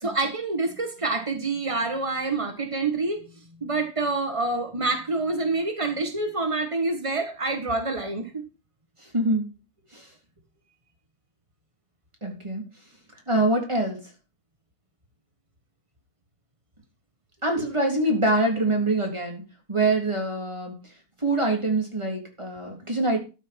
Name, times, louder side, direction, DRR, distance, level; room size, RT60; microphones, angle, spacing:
voice 1, 0.0-3.2 3.6-8.4, right 3 dB, 55° right, 5 dB, 0.3 m, -27 dB
voice 2, 9.0-9.5 9.9-10.1 12.2-12.6 13.3-14.0 17.4-19.4 19.7-20.7 21.2-23.2, right 2 dB, 10° right, 2 dB, 3.1 m, -24 dB
13.0 x 6.7 x 5.3 m, 0.31 s
omnidirectional pair, 3.4 m